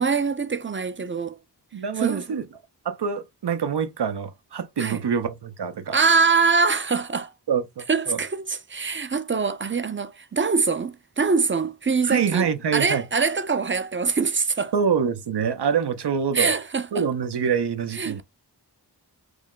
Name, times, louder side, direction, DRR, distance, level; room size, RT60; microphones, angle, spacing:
voice 1, 0.0-1.4 2.0-2.2 4.8-5.0 5.9-7.3 7.9-12.5 12.7-14.7 16.3-17.0 17.9-18.2, right 4 dB, 30° right, 0.5 m, -23 dB
voice 2, 1.7-2.4 2.8-6.0 7.5-8.2 12.1-13.0 14.7-16.6 16.9-18.2, right 7 dB, 75° right, 0.6 m, -25 dB
3.3 x 2.1 x 3.6 m
wide cardioid pair, 40°, 41 cm